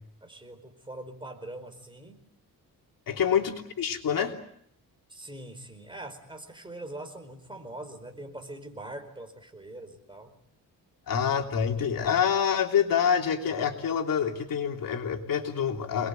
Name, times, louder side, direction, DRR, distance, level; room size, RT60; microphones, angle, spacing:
voice 1, 0.2-2.2 3.1-3.4 5.1-10.3, right 1 dB, 15° right, 6 dB, 4.7 m, -43 dB
voice 2, 3.1-4.3 11.1-16.1, left 7 dB, 70° left, 3 dB, 3.2 m, -26 dB
27.5 x 21.0 x 9.3 m, 0.72 s
cardioid pair, 120°, 35 cm